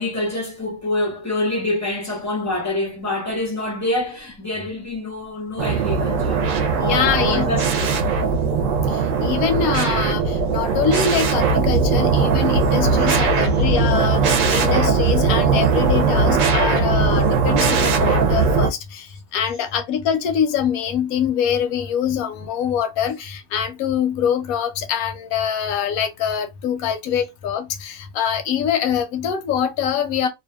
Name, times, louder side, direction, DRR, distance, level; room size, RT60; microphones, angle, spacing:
voice 1, 0.0-7.9 8.4-8.7, left 2 dB, 20° left, 0.4 m, -26 dB
sound 1, 5.6-18.7, right 4 dB, 70° right, 0.9 m, -19 dB
voice 2, 6.8-7.5 9.2-30.3, left 8 dB, 85° left, 1.0 m, -24 dB
2.7 x 2.3 x 2.2 m
omnidirectional pair, 1.5 m